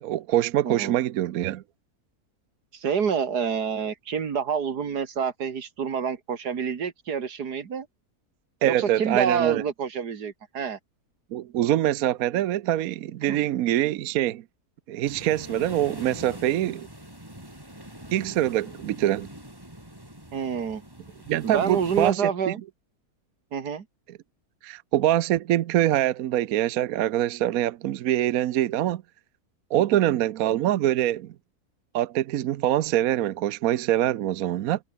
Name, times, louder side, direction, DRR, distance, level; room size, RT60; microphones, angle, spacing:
voice 1, 0.0-1.6 8.6-9.6 11.3-14.4 14.9-16.9 18.1-19.3 21.3-22.5 24.6-29.0 29.7-31.3 31.9-34.8, right 13 dB, 70° right, 1.1 m, -24 dB
voice 2, 0.6-1.0 2.7-7.9 8.6-10.8 13.2-13.5 20.3-20.8 21.4-22.6 23.5-23.9, right 6 dB, 90° right, 2.3 m, -28 dB
sound 1, 15.0-22.1, right 1 dB, 15° right, 5.1 m, -43 dB
omnidirectional pair, 1.7 m